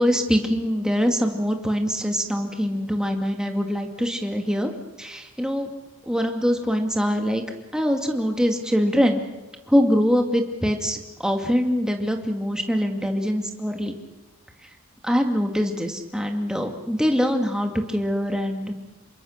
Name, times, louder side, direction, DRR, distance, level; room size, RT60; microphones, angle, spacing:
voice 1, 0.0-4.7 5.0-5.7 6.1-7.4 7.7-9.2 9.7-14.0 15.0-18.7, equal, 5° right, 3 dB, 2.3 m, -23 dB
28.0 x 23.0 x 6.6 m, 1.1 s
head